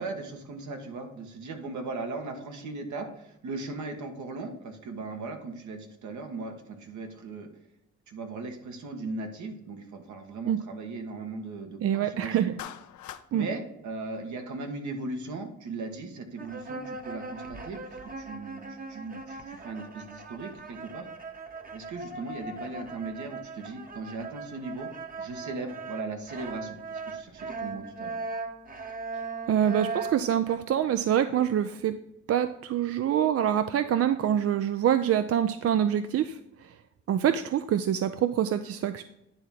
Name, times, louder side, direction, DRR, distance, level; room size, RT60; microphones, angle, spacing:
voice 1, 0.0-7.5 8.1-12.6 13.3-21.1 21.7-24.9 25.2-28.1, right 3 dB, 70° right, 5 dB, 1.5 m, -38 dB
voice 2, 11.8-12.5 13.3-13.5 29.5-31.9 32.3-36.8 37.1-39.0, right 10 dB, 50° right, 11 dB, 0.5 m, -25 dB
Clapping, 12.6-13.3, left 11 dB, 75° left, 0.6 m, -41 dB
sound 1, 16.4-30.6, right 4 dB, 30° right, 1.1 m, -39 dB
9.9 x 3.6 x 5.8 m, 0.85 s
cardioid pair, 90°, 30 cm